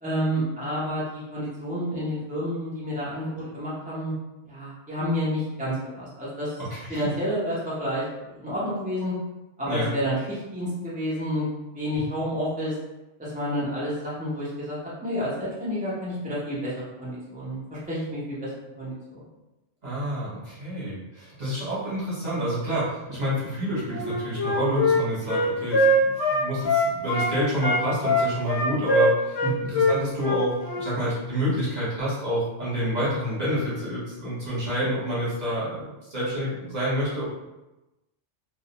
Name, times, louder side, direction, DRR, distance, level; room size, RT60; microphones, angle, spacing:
voice 1, 0.0-4.1 4.4-6.5 6.9-9.1 9.6-11.5 11.7-12.7 13.2-19.2 29.4-29.5, equal, 15° right, -9 dB, 0.3 m, -30 dB
voice 2, 6.7-7.1 9.6-9.9 11.9-12.0 19.8-37.2, equal, 40° right, -9 dB, 1.0 m, -28 dB
Wind instrument woodwind instrument, 23.9-27.3 27.6-30.9, left 1 dB, 60° left, 0.9 m, -22 dB
2.3 x 2.0 x 2.8 m, 1.0 s
omnidirectional pair, 1.3 m